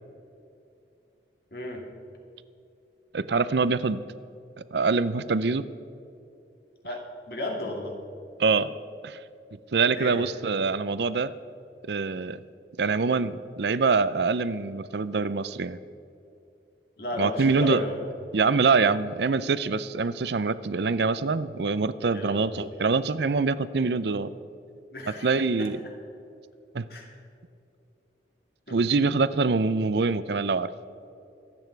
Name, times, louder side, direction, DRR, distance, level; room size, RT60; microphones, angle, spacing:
voice 1, 1.5-1.9 6.8-8.0 9.9-10.3 17.0-18.0 22.1-22.6 24.9-25.7 26.9-27.1 28.7-28.8, left 1 dB, 60° left, 0 dB, 2.4 m, -34 dB
voice 2, 3.1-4.0 4.7-5.6 8.4-8.7 9.0-9.2 9.7-11.3 11.9-12.4 12.8-15.8 17.2-17.8 18.3-24.3 25.1-25.8 26.7-26.8 28.7-30.7, right 4 dB, 70° right, 15 dB, 0.5 m, -24 dB
25.0 x 8.9 x 4.6 m, 2.6 s
head